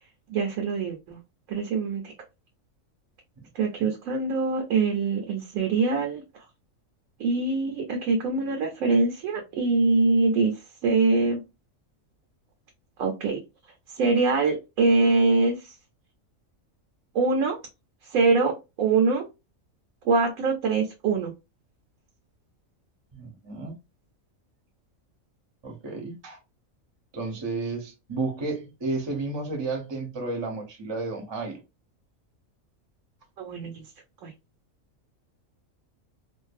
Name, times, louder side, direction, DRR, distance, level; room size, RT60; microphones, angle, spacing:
voice 1, 0.3-1.2 1.5-2.1 3.5-6.2 7.2-10.5 10.8-11.4 13.0-13.4 13.9-15.7 17.1-17.6 18.1-19.3 20.1-21.3 33.4-33.8 34.2-34.3, right 3 dB, 75° right, 1.0 m, -24 dB
voice 2, 23.1-23.7 25.6-26.4 27.1-31.6, right 3 dB, 25° right, 0.6 m, -32 dB
2.5 x 2.3 x 2.4 m
omnidirectional pair, 1.4 m